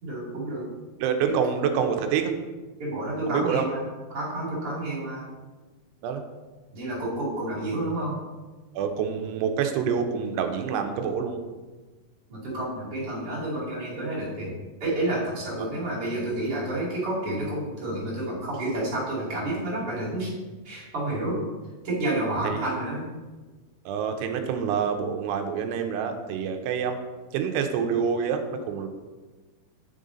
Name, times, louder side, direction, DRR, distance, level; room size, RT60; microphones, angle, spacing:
voice 1, 0.0-0.7 1.3-1.4 2.8-3.8 4.1-5.2 6.7-8.2 12.3-14.5 14.8-20.3 20.6-21.4 21.8-23.1, right 1 dB, 40° right, -7 dB, 2.7 m, -29 dB
voice 2, 1.0-2.3 3.3-3.7 6.0-6.2 8.8-11.4 15.6-15.7 19.8-19.9 21.3-21.5 22.4-22.7 23.9-27.0 27.3-28.9, right 7 dB, 80° right, 6 dB, 2.6 m, -27 dB
8.6 x 5.3 x 3.8 m, 1.3 s
omnidirectional pair, 5.0 m